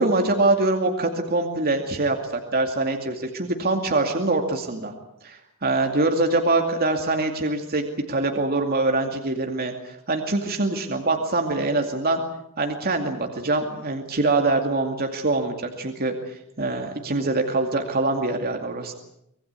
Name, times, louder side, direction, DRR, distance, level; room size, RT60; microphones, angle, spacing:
voice 1, 0.0-4.9 5.2-12.2 12.6-18.9, right 2 dB, 45° right, 4 dB, 2.4 m, -24 dB
25.0 x 21.0 x 8.3 m, 0.78 s
head